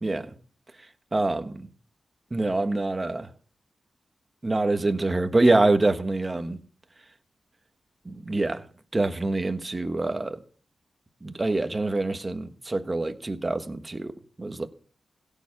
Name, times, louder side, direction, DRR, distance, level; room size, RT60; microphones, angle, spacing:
voice 1, 1.1-1.7 2.3-3.3 4.4-6.6 8.0-8.6 8.9-10.4 11.2-14.1 14.4-14.7, right 2 dB, 25° right, 1.5 m, -25 dB
16.5 x 7.2 x 7.3 m
cardioid pair, 80°, 0 cm